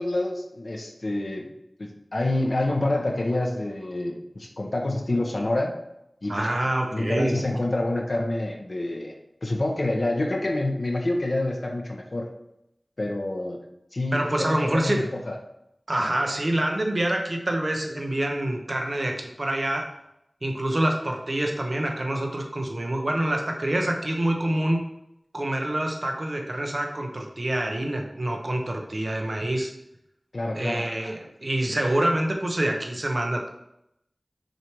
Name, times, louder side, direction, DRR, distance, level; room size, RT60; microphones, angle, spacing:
voice 1, 0.0-1.5 1.8-5.7 6.2-6.5 6.9-12.3 13.0-13.6 13.9-15.4 30.3-30.9, left 2 dB, 65° left, 1 dB, 0.8 m, -27 dB
voice 2, 6.3-7.4 14.1-15.1 15.9-19.9 20.4-24.8 25.3-29.7 30.5-33.5, right 1 dB, 55° right, 2 dB, 1.0 m, -26 dB
6.5 x 3.3 x 4.6 m, 0.80 s
wide cardioid pair, 40°, 0 cm